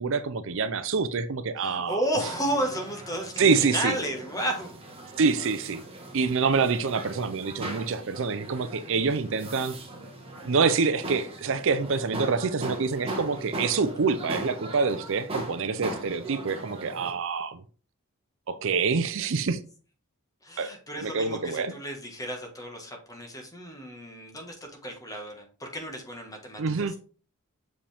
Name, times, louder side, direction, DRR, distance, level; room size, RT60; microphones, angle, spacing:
voice 1, 0.0-2.0 3.4-4.0 5.2-5.8 6.1-9.7 10.4-17.6 18.5-19.6 20.6-20.7 21.0-21.7 26.6-26.9, right 5 dB, 60° right, 0.5 m, -26 dB
voice 2, 1.6-4.7 20.4-27.0, equal, 15° left, 1.5 m, -33 dB
sound 1, 2.2-17.1, right 2 dB, 25° right, 1.4 m, -39 dB
7.0 x 5.1 x 3.4 m
head